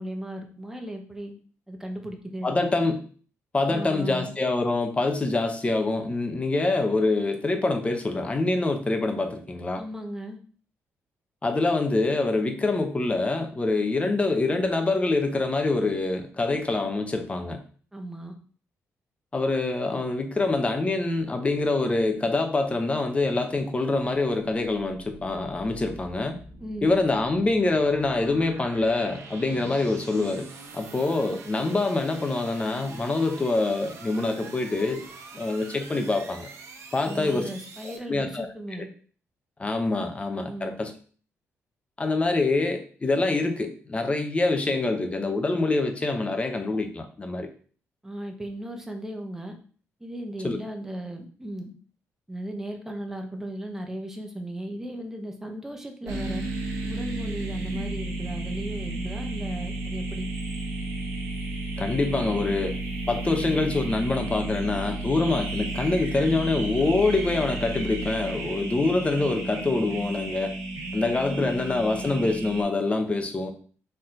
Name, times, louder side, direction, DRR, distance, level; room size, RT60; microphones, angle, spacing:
voice 1, 0.0-1.3 1.7-2.7 3.7-4.3 9.8-10.4 17.9-18.3 26.6-27.0 37.0-38.9 40.4-40.7 48.0-49.5 50.0-51.7 52.3-56.4 56.9-60.3 71.3-71.5, right 1 dB, 10° right, 3 dB, 0.9 m, -36 dB
voice 2, 2.4-3.0 3.5-9.8 11.4-17.6 19.3-26.3 26.8-30.5 30.7-35.0 35.3-36.5 36.9-37.5 37.8-38.5 39.6-40.9 42.0-47.5 50.4-50.6 61.8-62.8 63.1-70.5 70.9-73.5, left 3 dB, 25° left, 6 dB, 0.8 m, -25 dB
sound 1, 24.5-38.0, right 3 dB, 60° right, 0.8 m, -45 dB
sound 2, 56.1-72.6, right 2 dB, 90° right, 1.1 m, -32 dB
4.4 x 3.0 x 3.8 m, 0.42 s
cardioid pair, 100°, 5 cm